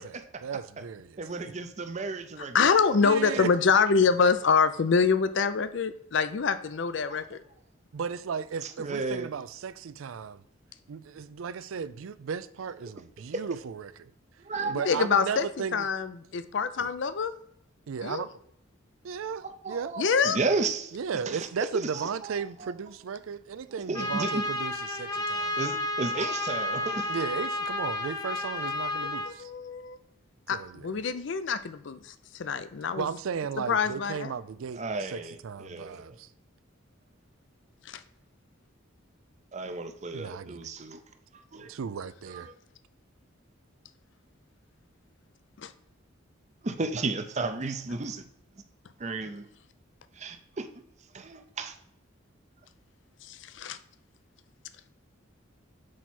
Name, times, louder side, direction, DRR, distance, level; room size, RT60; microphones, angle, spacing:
voice 1, 0.0-1.0 3.0-3.5 7.9-10.4 10.9-14.1 14.7-15.9 16.8-16.9 17.9-18.3 19.0-19.9 20.9-25.5 27.1-29.5 30.5-30.9 33.0-36.3 40.1-40.7 41.7-42.5, right 6 dB, 80° right, 0.4 m, -35 dB
voice 2, 1.2-2.6 8.6-9.3 13.3-13.4 14.4-14.8 18.0-18.1 19.4-21.0 21.3-22.7 23.9-24.5 25.1-25.2 25.6-27.2 34.7-36.1 39.5-41.0 41.5-41.7 42.2-42.4 46.6-48.2 49.0-49.5 50.1-50.7 51.1-51.8, right 3 dB, 35° right, 0.6 m, -33 dB
voice 3, 2.5-7.4 14.6-15.5 15.7-17.3 18.0-18.2 20.0-20.4 29.2-30.0 30.5-33.1 33.7-34.3 37.9-38.0 45.6-45.7 53.2-53.8, left 5 dB, 60° left, 0.5 m, -25 dB
Trumpet, 23.9-29.3, left 2 dB, 20° left, 0.8 m, -31 dB
6.2 x 4.6 x 4.2 m
head